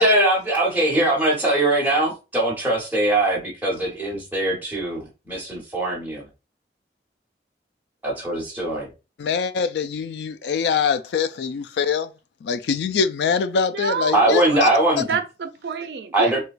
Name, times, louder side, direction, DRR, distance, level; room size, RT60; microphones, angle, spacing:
voice 1, 0.0-5.0 5.3-6.2 8.0-8.9 14.1-15.1 16.1-16.4, right 2 dB, 10° right, 1.2 m, -21 dB
voice 2, 9.2-12.1 12.4-14.7, left 6 dB, 75° left, 0.3 m, -23 dB
voice 3, 13.5-14.6 15.0-16.3, right 5 dB, 70° right, 0.5 m, -28 dB
4.4 x 2.3 x 2.4 m
head